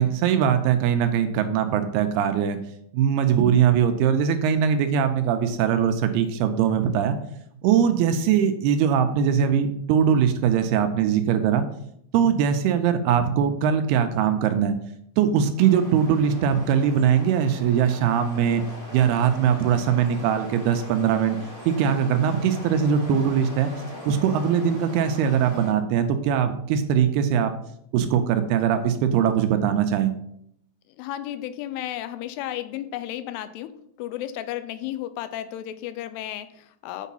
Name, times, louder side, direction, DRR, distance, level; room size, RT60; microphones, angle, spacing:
voice 1, 0.0-2.6 2.9-7.2 7.6-11.6 12.1-14.8 15.2-18.6 18.9-21.4 21.7-23.7 24.1-27.5 27.9-30.1, right 8 dB, 80° right, 8 dB, 2.5 m, -21 dB
sound 1, 15.6-25.7, left 1 dB, 50° right, 0.9 m, -41 dB
voice 2, 31.0-33.7 34.0-37.1, left 12 dB, 85° left, 12 dB, 2.6 m, -33 dB
8.2 x 4.6 x 5.6 m, 0.72 s
omnidirectional pair, 4.8 m